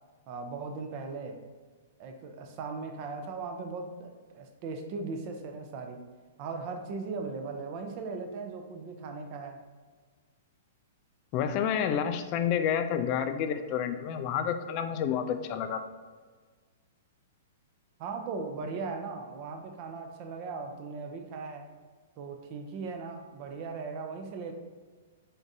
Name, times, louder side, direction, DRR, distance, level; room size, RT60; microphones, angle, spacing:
voice 1, 0.3-1.4 2.0-6.0 6.4-9.6 18.0-21.7 22.2-24.5, right 4 dB, 40° right, 5 dB, 0.5 m, -38 dB
voice 2, 11.3-15.8, left 8 dB, 35° left, 8 dB, 0.3 m, -29 dB
3.9 x 3.6 x 2.6 m, 1.5 s
hypercardioid pair, 155°, 0 cm